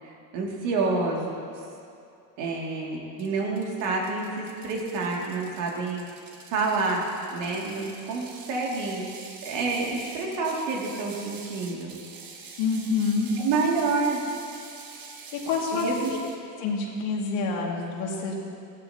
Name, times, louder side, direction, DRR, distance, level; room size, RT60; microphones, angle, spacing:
voice 1, 0.0-1.4 2.4-6.0 6.5-7.0 7.3-9.0 9.4-11.9 13.4-14.2 15.7-16.1, right 3 dB, 75° right, -2 dB, 2.5 m, -28 dB
Ratchet pawl, 3.2-16.4, right 5 dB, 50° right, 1.5 m, -46 dB
voice 2, 12.6-13.3 15.3-15.9 16.6-18.3, left 5 dB, 80° left, -1 dB, 2.2 m, -27 dB
15.0 x 12.5 x 2.8 m, 2.5 s
supercardioid pair, 90°, 44 cm